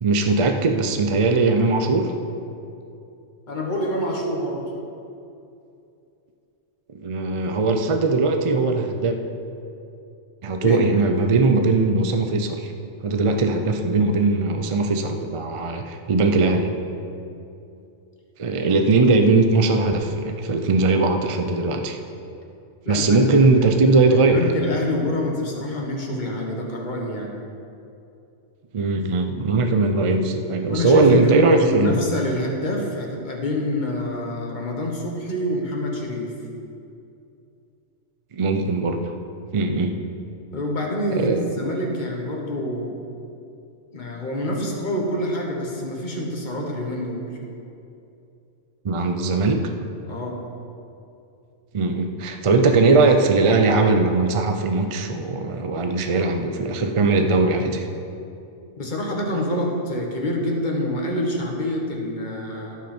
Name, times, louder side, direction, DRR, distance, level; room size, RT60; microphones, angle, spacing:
voice 1, 0.0-2.1 6.9-9.2 10.4-12.7 13.0-16.7 18.4-22.0 22.9-24.4 28.7-32.0 38.3-39.1 39.5-39.9 41.1-41.4 48.8-49.6 51.7-57.9, right 3 dB, 40° right, 5 dB, 0.5 m, -19 dB
voice 2, 3.5-4.7 10.6-10.8 22.8-23.7 24.3-27.4 30.6-36.4 40.5-43.0 43.9-47.2 50.1-50.4 58.8-62.8, left 1 dB, 40° left, 0 dB, 1.5 m, -26 dB
17.0 x 6.0 x 4.4 m, 2.7 s
omnidirectional pair, 1.3 m